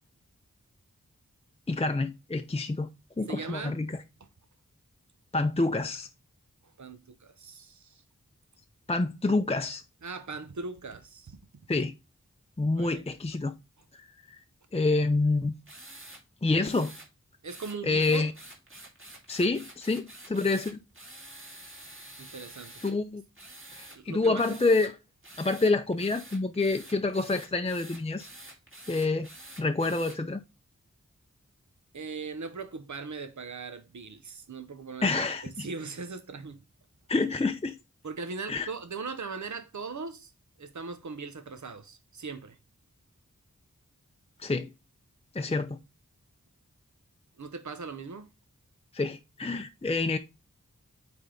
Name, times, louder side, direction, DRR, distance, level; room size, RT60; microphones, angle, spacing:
voice 1, 1.7-2.9 3.2-4.0 5.3-6.1 8.9-9.8 11.7-11.9 12.6-13.5 13.9-14.0 14.3-14.4 14.7-15.5 16.4-16.9 17.8-18.3 19.3-20.7 22.8-23.2 23.7-24.9 25.4-28.3 28.9-29.3 29.6-30.4 35.0-35.7 37.1-37.8 38.5-38.7 44.4-44.7 45.3-45.8 48.9-50.2, left 3 dB, 20° left, 0.5 m, -27 dB
voice 2, 3.3-3.8 6.8-8.0 10.0-11.4 12.8-13.0 17.4-18.3 22.2-22.8 23.9-24.6 31.9-35.1 35.4-36.6 38.0-40.3 40.6-42.6 47.4-48.3, right 4 dB, 65° right, 0.8 m, -39 dB
sound 1, 15.7-16.2 16.6-17.1 17.5-22.9 23.3-24.0 24.3-24.9 25.2-30.2, right 1 dB, 40° right, 2.6 m, -48 dB
9.1 x 3.5 x 3.8 m
wide cardioid pair, 45°, 31 cm